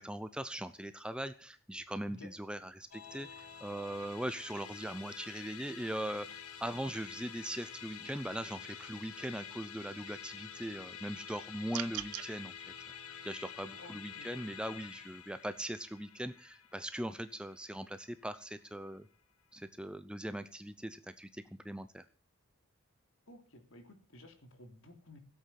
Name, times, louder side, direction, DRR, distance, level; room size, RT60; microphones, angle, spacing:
voice 1, 0.0-12.5 13.2-19.1 19.5-22.0, right 1 dB, 5° right, 11 dB, 0.6 m, -40 dB
Musical instrument, 2.9-18.4, left 7 dB, 85° left, 1.9 m, -49 dB
sound 1, 11.7-12.3, right 14 dB, 85° right, 0.6 m, -39 dB
voice 2, 13.8-14.3 23.3-25.2, left 1 dB, 65° left, 6 dB, 3.3 m, -54 dB
17.0 x 8.5 x 7.5 m, 0.38 s
head